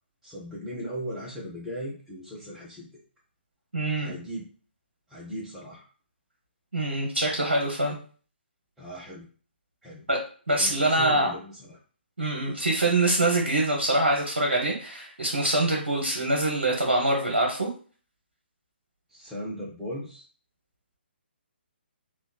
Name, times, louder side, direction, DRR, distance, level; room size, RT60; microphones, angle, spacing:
voice 1, 0.2-2.9 4.0-4.5 5.1-5.8 8.8-9.3 9.8-10.1 10.5-11.8 19.1-20.2, equal, 5° right, -7 dB, 0.5 m, -37 dB
voice 2, 3.7-4.1 6.7-8.0 10.1-10.2 10.5-11.3 12.2-17.7, right 2 dB, 70° right, -1 dB, 0.7 m, -24 dB
3.0 x 2.1 x 2.2 m, 0.41 s
figure-of-eight pair, 135°, 6 cm